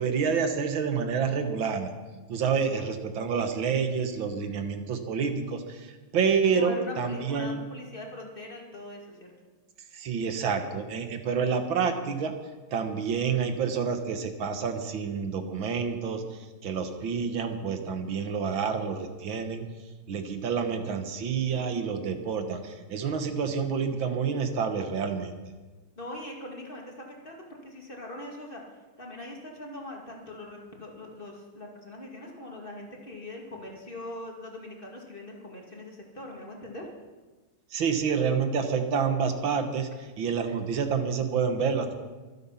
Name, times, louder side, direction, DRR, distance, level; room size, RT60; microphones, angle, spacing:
voice 1, 0.0-1.9 2.3-7.6 9.9-12.3 12.7-19.7 20.1-25.4 37.7-41.9, right 6 dB, 70° right, 7 dB, 2.0 m, -28 dB
voice 2, 6.5-9.3 26.0-36.9, left 1 dB, 25° left, 0 dB, 2.3 m, -41 dB
24.0 x 8.3 x 5.7 m, 1.3 s
omnidirectional pair, 2.3 m